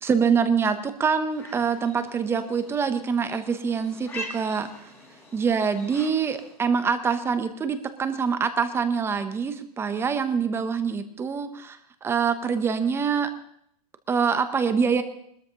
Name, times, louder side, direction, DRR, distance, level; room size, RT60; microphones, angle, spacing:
voice 1, 0.0-4.7 5.3-13.3 14.1-15.0, right 6 dB, 10° right, 10 dB, 0.7 m, -25 dB
sound 1, 1.3-6.6, left 1 dB, 10° left, 2.3 m, -43 dB
20.5 x 13.0 x 2.9 m, 0.71 s
supercardioid pair, 155°, 20 cm